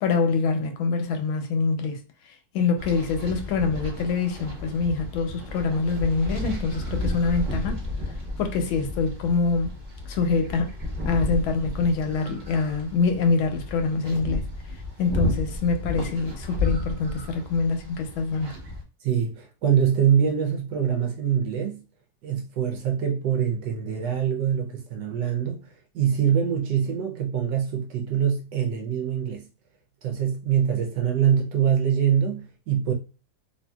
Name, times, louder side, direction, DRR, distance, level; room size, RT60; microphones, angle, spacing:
voice 1, 0.0-2.0 2.5-7.9 8.4-9.7 10.1-10.7 11.0-14.4 15.0-18.5, left 4 dB, 90° left, 1.4 m, -25 dB
sound 1, 2.8-18.8, left 2 dB, 30° right, 0.7 m, -33 dB
voice 2, 19.0-21.8 22.2-29.4 30.0-32.9, right 8 dB, 75° right, 1.0 m, -24 dB
3.1 x 2.6 x 2.2 m
omnidirectional pair, 2.2 m